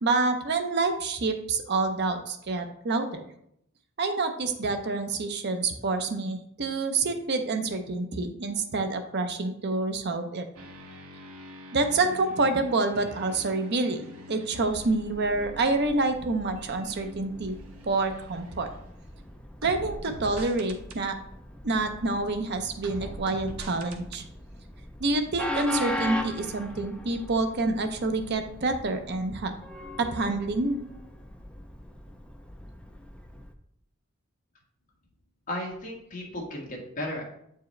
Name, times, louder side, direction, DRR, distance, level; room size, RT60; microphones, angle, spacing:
voice 1, 0.0-3.3 4.0-10.5 11.7-17.6 17.8-18.7 19.6-21.2 21.6-24.3 25.0-29.5 30.0-30.8, right 3 dB, 55° right, 7 dB, 0.6 m, -27 dB
sound 1, 10.5-19.1 19.6-21.0 22.8-24.2, equal, 90° right, 1.0 m, -45 dB
Train, 15.0-33.5, left 1 dB, 5° left, 0.4 m, -40 dB
voice 2, 35.5-37.2, left 1 dB, 40° left, -2 dB, 1.6 m, -34 dB
8.1 x 4.7 x 3.2 m, 0.73 s
head